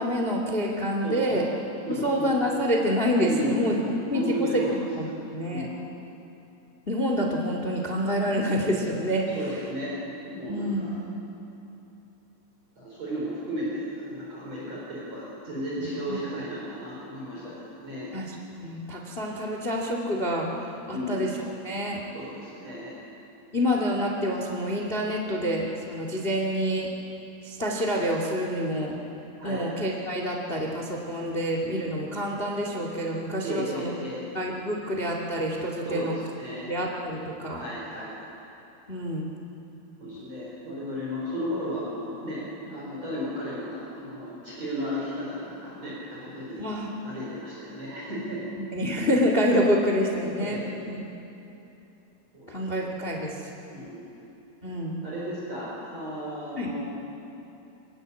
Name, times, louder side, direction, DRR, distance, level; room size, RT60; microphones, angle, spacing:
voice 1, 0.0-1.5 1.9-3.8 4.1-5.0 5.3-5.7 6.9-9.3 10.5-11.0 16.1-16.2 18.1-21.3 21.6-22.0 23.5-26.9 27.4-29.0 29.4-33.9 34.3-36.1 36.7-37.6 38.9-39.3 46.6-46.9 48.6-50.6 50.9-51.0 52.5-53.4 54.6-55.0 56.6-56.7, equal, 55° left, 0 dB, 0.6 m, -27 dB
voice 2, 1.0-1.5 1.9-2.3 3.2-4.8 5.5-5.8 9.3-10.0 10.2-11.0 12.8-17.5 17.8-18.1 20.9-21.3 22.1-22.9 29.4-29.7 33.4-34.2 35.9-36.7 37.5-38.2 40.0-46.6 47.0-48.4 50.4-50.7 52.3-52.7 53.7-54.1 55.0-56.9, equal, 35° right, -6 dB, 5.6 m, -34 dB
26.5 x 19.5 x 8.3 m, 2.9 s
omnidirectional pair, 5.6 m